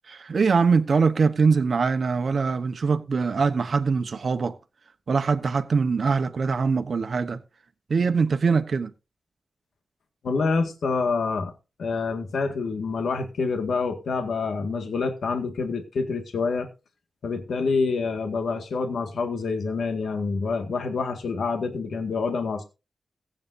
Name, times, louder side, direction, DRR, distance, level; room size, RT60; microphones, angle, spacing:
voice 1, 0.1-4.5 5.1-7.4 7.9-8.9, right 5 dB, 55° right, 1.1 m, -23 dB
voice 2, 10.2-11.5 11.8-16.7 17.2-22.6, left 4 dB, 80° left, 1.9 m, -27 dB
22.5 x 8.7 x 2.7 m
wide cardioid pair, 140°, 0 cm